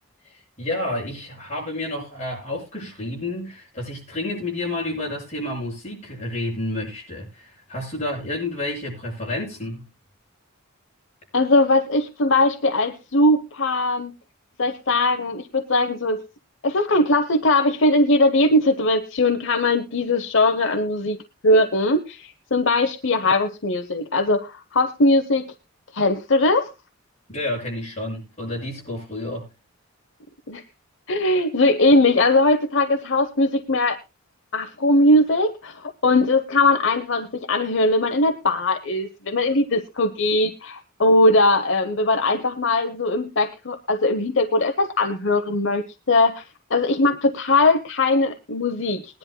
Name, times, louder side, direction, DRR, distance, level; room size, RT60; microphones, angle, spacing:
voice 1, 0.2-9.9 27.3-29.5, left 1 dB, 30° left, 7.2 m, -30 dB
voice 2, 11.3-14.1 14.6-16.2 16.6-21.2 21.4-25.4 25.9-26.7 30.5-30.6 31.1-34.0 34.5-46.4 46.7-49.2, left 2 dB, 60° left, 0.9 m, -20 dB
21.0 x 10.5 x 2.2 m
head